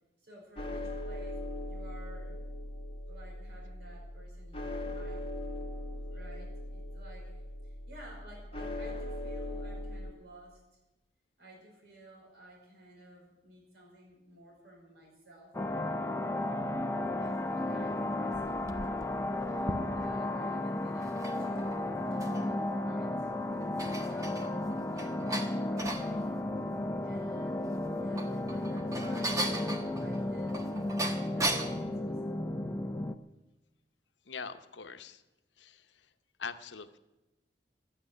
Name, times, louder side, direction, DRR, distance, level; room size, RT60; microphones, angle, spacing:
voice 1, 0.2-1.4 1.6-2.4 3.1-5.3 6.1-10.6 11.4-15.5 17.2-18.6 19.4-22.6 22.8-23.3 24.0-26.3 27.0-31.0 31.4-32.4, right 1 dB, 65° right, -2 dB, 5.2 m, -54 dB
sound 1, 0.6-10.1, left 1 dB, 30° left, 1.7 m, -40 dB
sound 2, 15.5-33.2, left 1 dB, 15° left, 0.6 m, -34 dB
sound 3, 18.1-20.3 21.0-22.6 23.0-23.1 23.5-26.1 27.8-31.8, right 1 dB, 20° right, 1.2 m, -38 dB
voice 2, 34.3-35.2 35.6-36.1 36.4-37.0, left 5 dB, 80° left, 10 dB, 0.9 m, -43 dB
13.0 x 8.9 x 9.7 m, 1.0 s
head